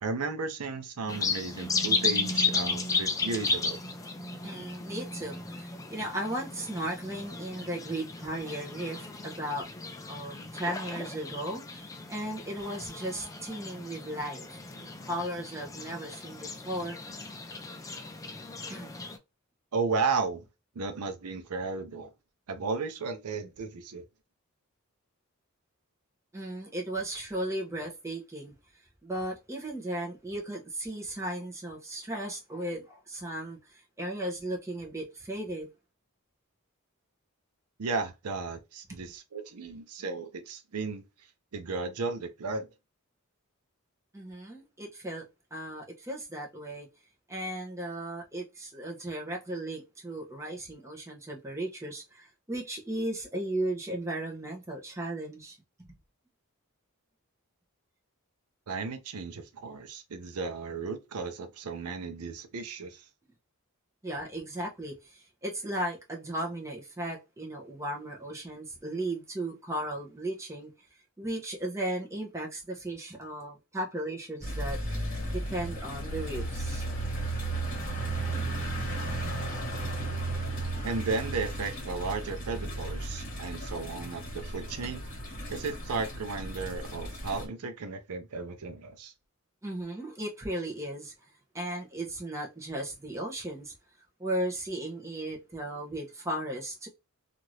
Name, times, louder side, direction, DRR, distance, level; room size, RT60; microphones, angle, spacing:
voice 1, 0.0-3.8 19.7-20.4 20.8-22.1 22.5-24.0 37.8-41.0 41.5-42.7 58.7-63.0 80.8-85.0 85.5-89.1, right 4 dB, 85° right, 0.5 m, -34 dB
sound 1, 1.1-19.2, left 4 dB, 15° left, 0.3 m, -34 dB
voice 2, 4.4-9.7 10.1-17.0 18.7-18.9 26.3-28.5 29.0-35.7 38.9-39.0 44.1-46.9 47.3-55.6 64.0-70.7 71.2-74.8 75.3-76.8 89.6-91.1 91.5-93.7 94.2-96.9, right 1 dB, 15° right, 0.8 m, -36 dB
sound 2, 74.4-87.5, right 2 dB, 40° left, 1.1 m, -34 dB
2.8 x 2.5 x 3.1 m
head